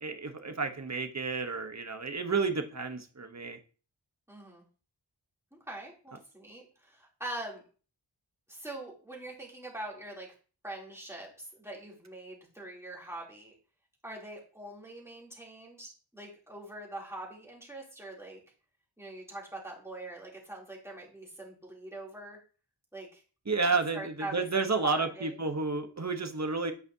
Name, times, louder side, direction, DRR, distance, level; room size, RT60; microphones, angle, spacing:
voice 1, 0.0-3.6 23.5-26.7, right 4 dB, 35° right, 6 dB, 1.0 m, -31 dB
voice 2, 4.3-4.6 5.5-7.6 8.5-10.3 10.6-13.5 14.0-18.4 19.0-22.4 22.9-23.2 23.9-25.3, right 1 dB, 5° right, -4 dB, 3.0 m, -43 dB
9.7 x 4.9 x 2.8 m, 0.38 s
wide cardioid pair, 40°, 47 cm